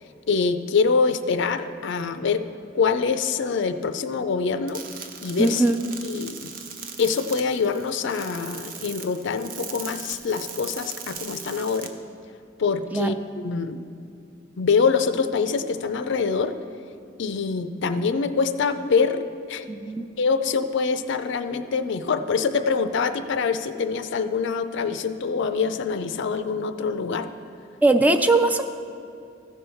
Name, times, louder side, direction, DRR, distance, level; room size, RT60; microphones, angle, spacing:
voice 1, 0.3-2.4 2.7-4.8 5.2-5.6 6.0-6.5 7.0-11.9 12.6-13.2 13.4-13.8 14.6-16.5 17.2-19.2 19.5-19.7 20.2-27.3, left 5 dB, 65° left, 10 dB, 0.4 m, -24 dB
sound 1, 4.7-11.9, right 6 dB, 45° right, 0.7 m, -39 dB
voice 2, 5.4-5.8 12.9-13.1 19.7-20.1 27.8-28.6, right 2 dB, 10° right, 8 dB, 0.3 m, -20 dB
14.5 x 5.5 x 4.4 m, 2.5 s
head